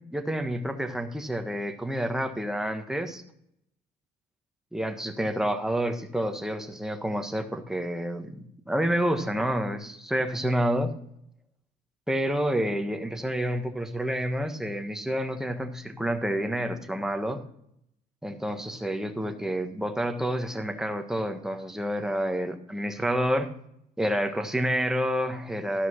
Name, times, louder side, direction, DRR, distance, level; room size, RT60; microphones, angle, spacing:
voice 1, 0.1-3.2 4.7-8.4 8.7-11.0 12.1-17.4 18.2-23.5 24.0-25.9, equal, 5° right, 5 dB, 1.3 m, -29 dB
13.5 x 5.8 x 6.3 m, 0.72 s
cardioid pair, 110°, 17 cm